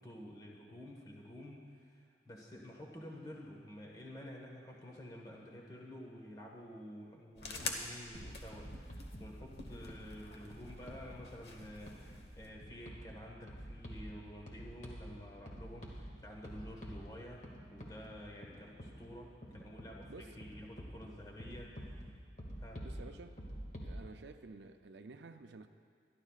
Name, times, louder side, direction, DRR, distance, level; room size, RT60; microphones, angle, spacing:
voice 1, 0.0-22.1 22.6-22.9, equal, 20° left, -1 dB, 1.5 m, -50 dB
sound 1, 7.4-12.5, left 3 dB, 65° left, 1.3 m, -47 dB
sound 2, 8.1-24.0, equal, 45° left, 2.0 m, -49 dB
voice 2, 22.8-23.4 23.8-25.7, right 3 dB, 75° right, 7 dB, 0.5 m, -52 dB
25.0 x 12.0 x 2.5 m, 2.1 s
head